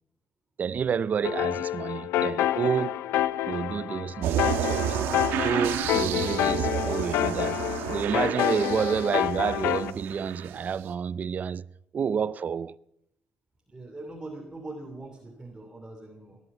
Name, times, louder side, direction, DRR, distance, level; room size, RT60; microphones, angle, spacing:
voice 1, 0.6-3.0 3.5-4.9 5.4-7.6 7.9-11.7 11.9-12.7, right 7 dB, 45° right, 0.5 m, -29 dB
sound 1, 1.2-9.9, left 12 dB, 85° left, 0.7 m, -28 dB
sound 2, 4.2-10.8, right 10 dB, 85° right, 1.3 m, -31 dB
voice 2, 13.7-16.4, right 2 dB, 20° right, 2.7 m, -42 dB
18.5 x 11.0 x 6.0 m
cardioid pair, 75°, 4 cm